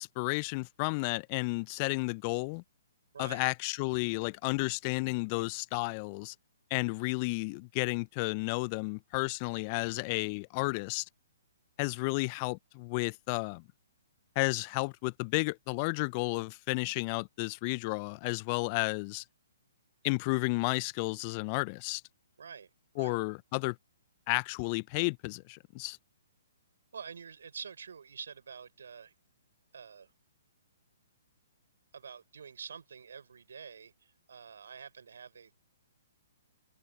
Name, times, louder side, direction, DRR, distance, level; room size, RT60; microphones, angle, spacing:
voice 1, 0.0-2.6 3.2-6.3 6.7-11.1 11.8-13.6 14.3-19.2 20.0-22.0 23.0-23.8 24.3-26.0, left 29 dB, 35° left, 0.8 m, -32 dB
voice 2, 22.4-22.7 22.9-23.2 26.9-29.1 29.7-30.1 31.9-35.5, right 6 dB, 65° right, 5.5 m, -47 dB
figure-of-eight pair, 125°, 0 cm